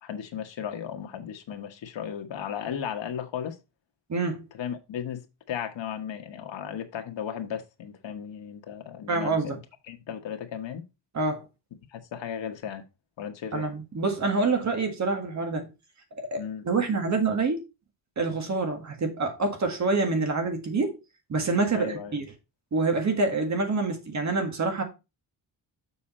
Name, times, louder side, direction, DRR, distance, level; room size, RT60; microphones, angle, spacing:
voice 1, 0.0-3.6 4.5-9.6 9.9-10.8 11.9-12.8 13.2-13.7 16.4-16.7 21.7-22.2, left 8 dB, 85° left, 1.4 m, -35 dB
voice 2, 4.1-4.5 9.1-9.6 11.1-11.5 13.5-15.7 16.2-17.6 18.2-21.0 21.3-22.3 22.7-24.8, right 3 dB, 40° right, 1.7 m, -26 dB
7.2 x 5.0 x 4.3 m
wide cardioid pair, 175°, 43 cm